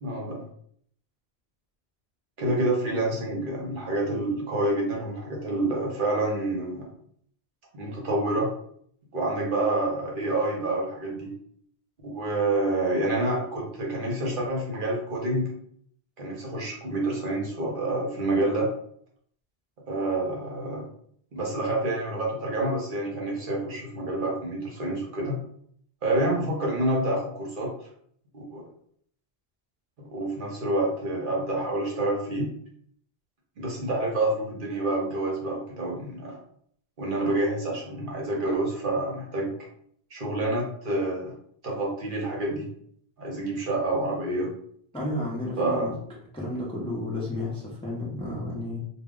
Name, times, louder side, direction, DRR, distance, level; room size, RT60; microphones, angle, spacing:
voice 1, 0.0-0.4 2.4-6.9 7.7-8.5 9.1-11.3 12.0-15.5 16.2-18.7 19.9-20.8 21.3-25.4 26.0-27.7 28.3-28.6 30.1-32.5 33.6-36.4 37.0-39.5 40.1-41.3 41.6-42.7 43.2-44.5 45.6-45.9, right 2 dB, 60° right, -2 dB, 0.8 m, -28 dB
voice 2, 44.9-45.9 46.3-48.8, left 1 dB, 5° left, -5 dB, 0.5 m, -32 dB
2.2 x 2.1 x 3.6 m, 0.65 s
omnidirectional pair, 1.0 m